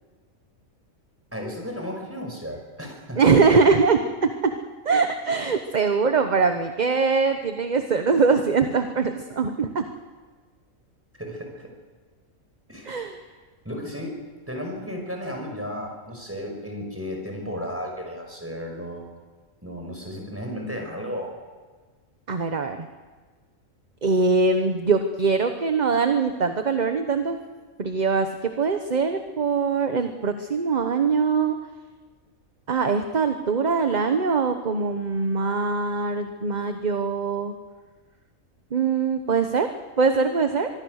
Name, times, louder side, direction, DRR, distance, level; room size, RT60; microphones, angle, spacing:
voice 1, 1.3-3.2 11.2-11.7 12.7-13.0 13.6-14.2 14.5-19.1 19.6-21.3, equal, 10° right, 2 dB, 5.4 m, -34 dB
voice 2, 3.2-4.6 4.8-9.9 12.8-13.2 22.3-22.8 24.0-27.4 27.8-31.6 32.7-37.5 38.7-40.7, right 4 dB, 35° right, 7 dB, 1.0 m, -22 dB
24.5 x 22.0 x 6.5 m, 1.4 s
omnidirectional pair, 1.5 m